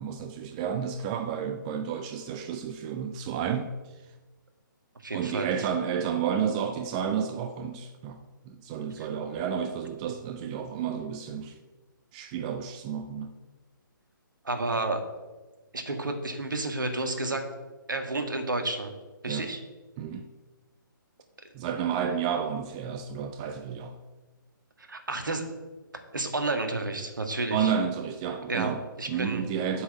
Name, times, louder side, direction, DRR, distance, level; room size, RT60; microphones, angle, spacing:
voice 1, 0.0-3.7 5.1-11.5 12.1-13.4 19.3-19.5 20.0-20.2 21.5-24.0 27.5-28.8 29.1-29.8, right 7 dB, 20° right, 0.4 m, -31 dB
voice 2, 5.0-5.5 9.0-9.1 14.4-15.0 15.7-17.4 17.9-18.9 19.2-19.6 24.8-25.4 26.1-27.7 28.5-29.4, right 2 dB, 65° right, 1.8 m, -31 dB
8.2 x 6.1 x 7.7 m
figure-of-eight pair, 135°, 11 cm